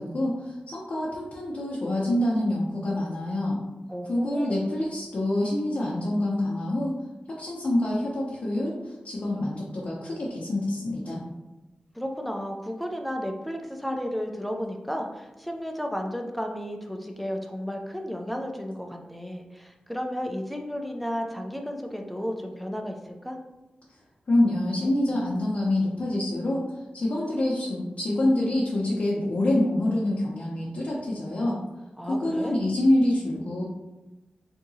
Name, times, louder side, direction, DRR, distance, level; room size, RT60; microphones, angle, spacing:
voice 1, 0.0-3.6 4.1-7.0 7.3-11.2 24.3-26.7 26.9-31.6 32.1-33.6, left 1 dB, 55° left, -5 dB, 0.7 m, -26 dB
voice 2, 3.9-4.6 11.9-23.4 32.0-32.6, equal, ahead, 2 dB, 0.4 m, -33 dB
3.6 x 2.8 x 2.7 m, 1.1 s
wide cardioid pair, 85°, 3 cm